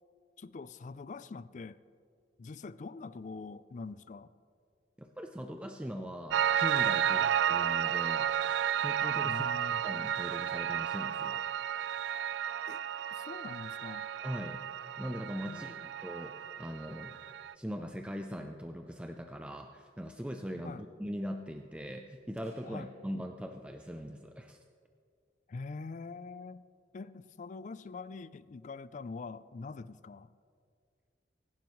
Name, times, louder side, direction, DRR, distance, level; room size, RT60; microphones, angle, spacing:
voice 1, 0.4-1.8 2.4-4.3 6.9-7.3 9.2-9.9 12.7-12.8 13.1-14.1 15.4-15.9 20.6-20.8 22.6-22.9 25.5-26.7 26.9-30.3, left 4 dB, 45° left, 16 dB, 0.4 m, -44 dB
voice 2, 5.0-9.5 9.8-11.4 14.2-14.6 15.0-15.7 16.0-17.2 17.5-24.6, equal, 5° right, 4 dB, 0.5 m, -41 dB
Piano, 6.3-17.5, right 9 dB, 80° right, 0.3 m, -32 dB
sound 1, 22.4-24.0, equal, 40° right, 1.8 m, -62 dB
25.5 x 11.5 x 3.1 m, 2.2 s
head